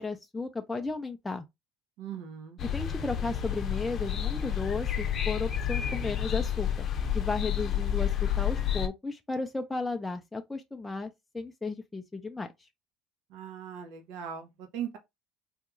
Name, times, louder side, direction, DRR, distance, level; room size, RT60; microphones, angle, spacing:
voice 1, 0.0-1.4 2.7-6.9 7.1-12.5, left 3 dB, 10° left, 0.4 m, -34 dB
voice 2, 2.0-2.6 13.3-14.5 14.7-15.0, right 8 dB, 80° right, 0.8 m, -39 dB
sound 1, 2.6-8.9, left 9 dB, 45° left, 0.7 m, -30 dB
3.5 x 2.3 x 3.0 m
cardioid pair, 120°, 0 cm